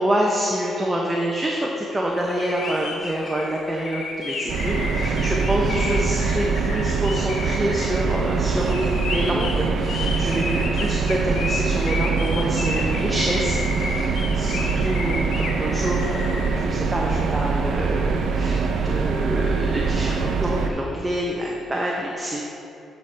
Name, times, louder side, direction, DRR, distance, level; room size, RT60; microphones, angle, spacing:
voice 1, 0.0-22.4, equal, 15° right, -2 dB, 0.8 m, -27 dB
sound 1, 2.2-16.5, left 4 dB, 70° left, 0.8 m, -32 dB
sound 2, 4.5-20.7, right 5 dB, 75° right, 0.6 m, -23 dB
11.0 x 5.4 x 3.3 m, 2.7 s
cardioid pair, 90°, 0 cm